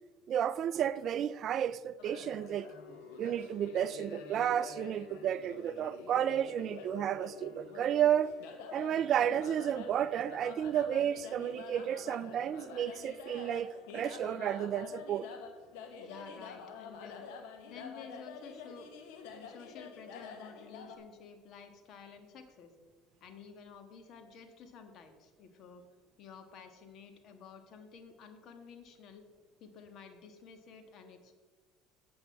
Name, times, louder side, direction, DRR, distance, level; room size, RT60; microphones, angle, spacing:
voice 1, 0.3-2.7 3.2-8.3 8.7-15.3, right 10 dB, 50° right, 0.3 m, -32 dB
sound 1, 2.0-21.0, left 5 dB, 80° left, 1.2 m, -48 dB
voice 2, 16.0-17.2 17.7-18.9 19.2-22.7 23.2-25.8 26.2-29.2 29.6-31.3, left 5 dB, 55° left, 1.4 m, -52 dB
8.3 x 7.8 x 4.6 m
supercardioid pair, 90°, 0 cm